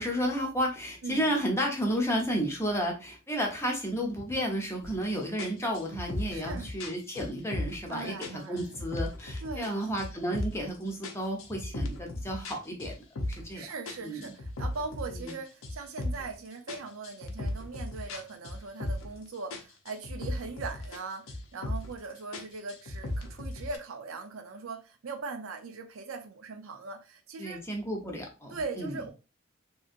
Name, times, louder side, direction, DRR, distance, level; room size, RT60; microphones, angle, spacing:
voice 1, 0.0-12.9 13.3-13.7 14.0-14.3 15.1-15.3 27.4-29.0, equal, 15° left, 0.7 m, -32 dB
voice 2, 1.0-1.4 6.3-6.7 7.9-8.9 9.4-10.0 13.5-27.6 28.5-29.1, right 4 dB, 80° right, 0.5 m, -40 dB
sound 1, 4.8-5.0 5.4-7.9 8.2-9.7 10.0-10.7 11.0-13.5 13.9-16.3 16.7-19.2 19.5-21.0 21.3-22.0 22.3-23.8, left 1 dB, 80° left, 0.6 m, -36 dB
2.9 x 2.7 x 2.5 m
head